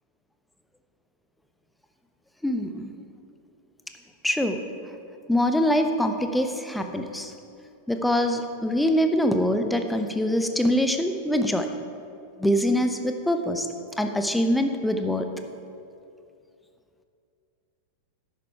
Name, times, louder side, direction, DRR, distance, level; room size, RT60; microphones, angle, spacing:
voice 1, 2.4-2.9 4.2-4.6 5.3-7.3 7.9-11.7 12.4-13.7 14.0-15.3, equal, 5° left, 6 dB, 0.7 m, -24 dB
11.0 x 9.1 x 4.6 m, 2.6 s
figure-of-eight pair, 90°, 0 cm